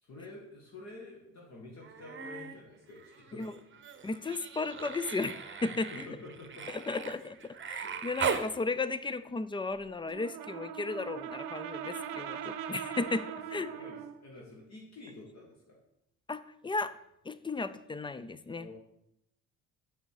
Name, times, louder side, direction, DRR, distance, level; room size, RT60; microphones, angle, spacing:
voice 1, 0.0-3.4 5.6-6.7 7.8-8.0 13.5-15.8 18.6-18.7, left 2 dB, 50° left, -3 dB, 1.8 m, -49 dB
Human voice, 1.8-2.6 2.9-8.5 10.1-10.2, right 6 dB, 35° right, 0.8 m, -39 dB
voice 2, 4.0-6.1 6.7-13.9 16.3-17.0 17.2-18.7, left 3 dB, 15° left, 14 dB, 0.4 m, -35 dB
Brass instrument, 10.0-14.2, right 9 dB, 70° right, 0.7 m, -40 dB
6.3 x 5.6 x 4.7 m, 0.79 s
supercardioid pair, 65°, 35 cm